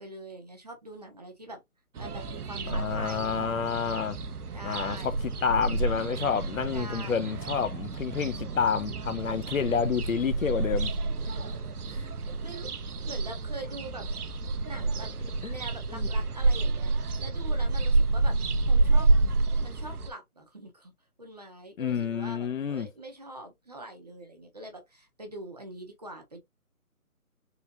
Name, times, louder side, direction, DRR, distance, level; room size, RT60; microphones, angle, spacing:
voice 1, 0.0-1.6 2.0-3.7 4.5-5.2 6.7-7.3 11.2-14.1 14.6-15.1 15.5-16.9 17.2-18.4 18.7-19.1 19.6-20.9 21.2-26.4, right 1 dB, 30° right, 0.7 m, -44 dB
sound 1, 2.0-20.1, right 3 dB, 85° right, 0.8 m, -29 dB
voice 2, 2.7-4.2 4.6-5.1 5.4-10.9 15.4-15.5 15.9-16.1 21.8-22.9, left 7 dB, 60° left, 0.6 m, -29 dB
3.9 x 3.2 x 2.7 m
figure-of-eight pair, 160°, 44 cm